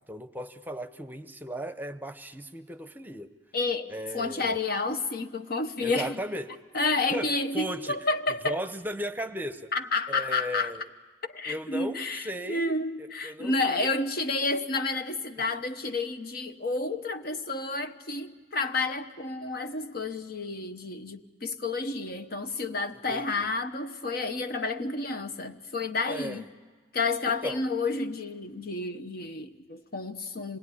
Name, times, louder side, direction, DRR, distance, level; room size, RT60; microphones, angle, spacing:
voice 1, 0.0-3.3 3.9-4.6 5.8-6.6 7.1-8.0 8.4-9.7 10.1-10.9 11.4-12.7 13.0-13.9 15.4-15.5 22.9-23.5 26.1-26.4 27.3-27.7, equal, 10° right, 0.8 m, -36 dB
voice 2, 3.5-6.2 6.7-8.6 9.7-10.7 11.2-26.5 26.9-30.6, left 3 dB, 60° left, 1.1 m, -30 dB
26.5 x 20.0 x 9.9 m
head